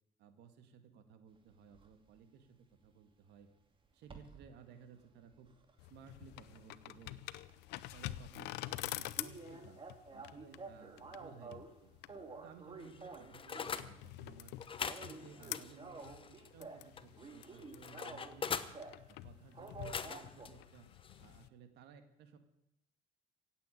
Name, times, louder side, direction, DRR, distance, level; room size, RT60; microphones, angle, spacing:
voice 1, 0.2-2.6 2.8-3.5 3.9-5.5 5.9-7.2 7.9-9.8 10.1-11.9 12.4-14.5 14.8-18.8 19.1-20.9 21.2-22.4, right 7 dB, 80° right, 8 dB, 1.9 m, -58 dB
sound 1, 1.7-1.9 4.0-4.5 4.9-7.1 7.3-7.5 7.9-8.0 8.3-8.4 8.6-8.7 9.2-11.7 12.1-13.8 14.2-14.5 14.8-16.9 17.2-19.0 19.5-20.5, right 4 dB, 30° right, 2.4 m, -51 dB
sound 2, 5.8-21.5, left 16 dB, 90° left, 0.7 m, -48 dB
sound 3, 12.8-13.9 14.6-16.5 17.0-18.7 19.7-20.5 21.0-21.2, left 6 dB, 30° left, 1.0 m, -43 dB
16.5 x 8.4 x 9.1 m, 0.83 s
cardioid pair, 110°, 17 cm